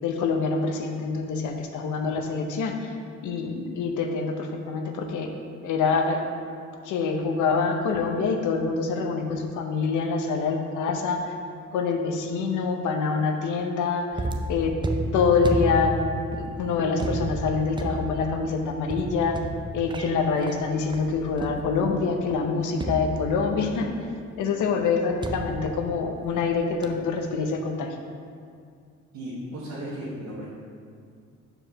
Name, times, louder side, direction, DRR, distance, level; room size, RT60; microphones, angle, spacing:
voice 1, 0.0-2.9 3.2-5.3 5.6-6.2 6.8-11.3 11.7-14.8 15.1-15.9 16.4-19.4 19.7-23.9 24.4-28.0, left 5 dB, 80° left, 4 dB, 0.8 m, -26 dB
sound 1, 14.1-22.1 22.8-23.8 25.2-26.5 26.8-27.2, equal, 15° right, 0.5 m, -32 dB
voice 2, 29.1-30.5, equal, 70° right, -8 dB, 1.4 m, -35 dB
4.9 x 4.8 x 6.1 m, 2.3 s
cardioid pair, 90°, 30 cm